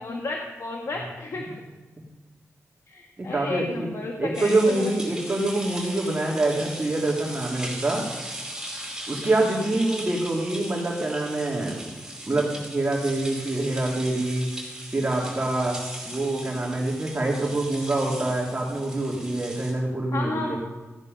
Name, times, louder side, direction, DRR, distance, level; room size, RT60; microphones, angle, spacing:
voice 1, 0.0-1.4 2.9-4.9 9.5-9.8 20.1-20.6, left 3 dB, 65° left, 1 dB, 1.5 m, -32 dB
voice 2, 3.2-3.9 4.2-8.0 9.1-11.9 12.3-14.4 14.9-15.8 16.0-20.6, right 2 dB, 35° right, -3 dB, 2.7 m, -25 dB
sound 1, 4.3-19.7, right 1 dB, 10° right, 5.0 m, -38 dB
15.0 x 10.0 x 5.3 m, 1.2 s
cardioid pair, 70°, 5 cm